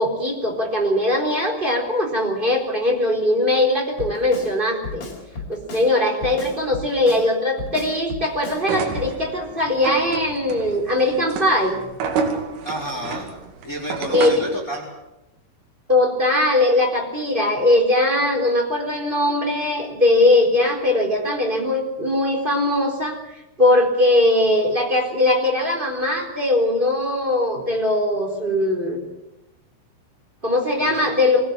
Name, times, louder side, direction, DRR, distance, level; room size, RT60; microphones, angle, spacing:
voice 1, 0.0-5.0 5.5-11.8 14.1-14.4 15.9-29.0 30.4-31.4, left 1 dB, 10° right, 1 dB, 3.5 m, -20 dB
Drum kit, 4.0-4.5 4.8-5.9 6.2-7.3 7.6-8.6 9.0-9.1, left 3 dB, 40° left, 5.3 m, -33 dB
sound 1, 8.6-14.6, right 5 dB, 85° right, 5.0 m, -29 dB
voice 2, 12.6-13.3 13.6-14.8 30.8-31.1, equal, 20° left, 0 dB, 3.7 m, -30 dB
23.0 x 16.0 x 8.9 m, 0.97 s
omnidirectional pair, 5.6 m